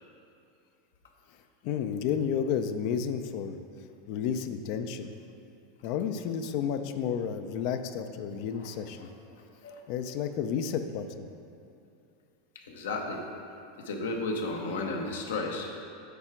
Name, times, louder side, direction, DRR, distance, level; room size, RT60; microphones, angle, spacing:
voice 1, 1.6-3.6 4.1-5.1 5.8-9.1 9.9-11.2, left 7 dB, 60° left, 8 dB, 0.5 m, -31 dB
voice 2, 8.5-9.8 12.7-13.2 13.8-15.7, left 2 dB, 85° left, 1 dB, 1.0 m, -34 dB
8.3 x 4.9 x 4.4 m, 2.6 s
hypercardioid pair, 105°, 0 cm